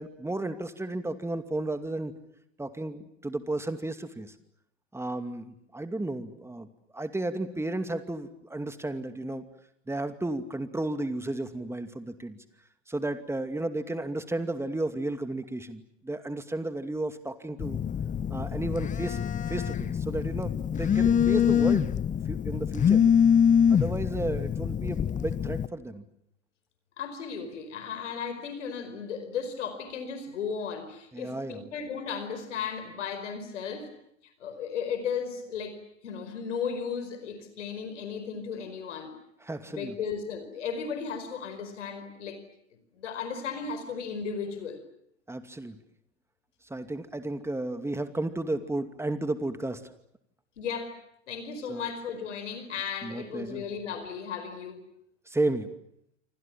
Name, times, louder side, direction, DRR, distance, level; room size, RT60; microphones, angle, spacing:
voice 1, 0.0-2.1 2.6-4.3 4.9-6.7 6.9-9.4 9.9-12.4 12.9-17.8 18.3-19.2 19.5-21.9 22.3-23.0 23.7-26.0 31.1-31.7 39.4-39.9 45.3-45.8 46.6-49.8 51.7-51.9 53.0-53.6 55.3-55.7, right 2 dB, 5° right, 9 dB, 2.5 m, -33 dB
Telephone, 17.6-25.7, left 8 dB, 20° left, 1.0 m, -25 dB
voice 2, 27.0-33.9 34.4-35.8 36.0-39.2 39.7-42.4 43.0-44.8 50.6-51.0 51.3-54.8, left 6 dB, 70° left, 9 dB, 4.9 m, -35 dB
28.5 x 25.5 x 7.4 m, 0.74 s
figure-of-eight pair, 85°, 37 cm